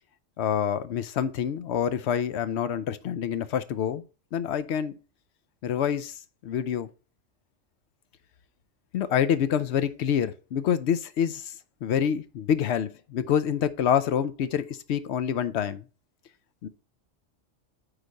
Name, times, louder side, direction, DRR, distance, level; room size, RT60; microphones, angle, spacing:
voice 1, 0.4-4.0 4.3-5.0 5.6-6.9 8.9-11.5 11.8-15.9 16.6-16.7, left 8 dB, 65° left, 0.8 m, -27 dB
8.0 x 4.0 x 4.0 m
omnidirectional pair, 1.3 m